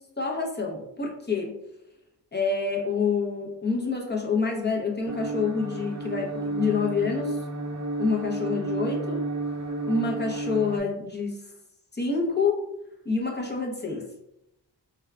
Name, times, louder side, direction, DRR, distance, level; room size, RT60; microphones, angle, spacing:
voice 1, 0.2-1.5 2.3-7.4 8.0-9.3 9.8-11.4 11.9-12.6 13.0-14.0, left 4 dB, 25° left, 0 dB, 0.8 m, -27 dB
sound 1, 5.1-10.8, right 2 dB, 40° right, 0.6 m, -32 dB
4.5 x 2.3 x 2.2 m, 0.83 s
cardioid pair, 55°, 43 cm